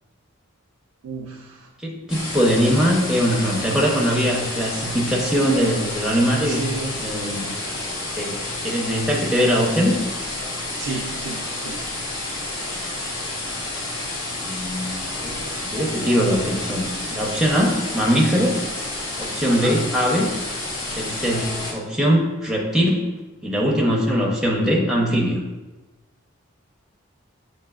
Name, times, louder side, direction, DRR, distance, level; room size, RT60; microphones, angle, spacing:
voice 1, 1.0-1.7 6.4-7.1 10.8-11.9 18.9-19.8, right 3 dB, 80° right, -1 dB, 0.4 m, -33 dB
voice 2, 1.8-6.6 7.0-7.5 8.2-8.4 8.6-10.0 14.4-15.3 15.7-18.6 19.2-20.3 21.0-23.1 23.4-25.4, equal, 5° right, -2 dB, 0.7 m, -21 dB
sound 1, 2.1-21.7, left 2 dB, 60° left, 1.2 m, -30 dB
7.9 x 2.7 x 2.4 m, 1.2 s
head